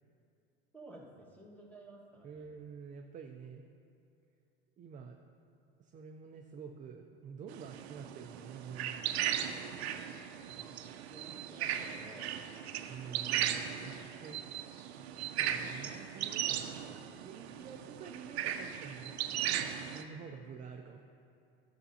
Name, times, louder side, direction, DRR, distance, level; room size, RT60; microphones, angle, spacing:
voice 1, 0.7-2.5 10.6-10.8 11.1-12.4, right 2 dB, 5° left, -3 dB, 1.5 m, -53 dB
voice 2, 2.2-3.7 4.8-5.2 5.8-9.1 12.9-14.0 14.2-14.4 15.2-16.5 17.2-19.1 19.8-21.0, right 6 dB, 25° right, 3 dB, 0.4 m, -48 dB
sound 1, 7.5-20.0, right 10 dB, 85° right, 0.6 m, -37 dB
11.0 x 6.8 x 2.8 m, 2.6 s
supercardioid pair, 105°, 31 cm